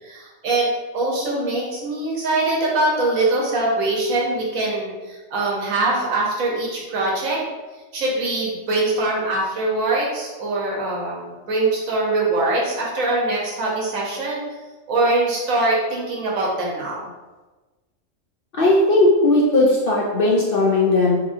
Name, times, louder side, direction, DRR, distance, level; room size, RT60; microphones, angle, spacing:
voice 1, 0.0-0.7 0.9-7.4 7.9-14.5 14.9-17.1, right 2 dB, 90° right, -4 dB, 1.3 m, -23 dB
voice 2, 18.5-21.2, left 2 dB, 60° left, -3 dB, 0.6 m, -17 dB
4.1 x 2.6 x 2.6 m, 1.2 s
omnidirectional pair, 1.4 m